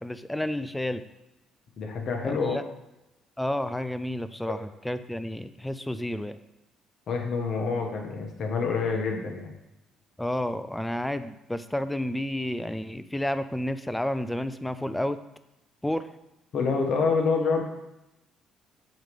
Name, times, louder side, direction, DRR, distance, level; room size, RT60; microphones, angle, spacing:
voice 1, 0.0-1.0 2.2-2.6 3.4-6.4 10.2-15.2 15.8-16.1, left 1 dB, 5° left, 12 dB, 0.4 m, -30 dB
voice 2, 1.8-2.6 4.5-4.6 7.1-9.5 16.5-17.6, left 4 dB, 60° left, 2 dB, 1.4 m, -27 dB
7.6 x 3.2 x 5.3 m, 0.91 s
supercardioid pair, 75°, 0 cm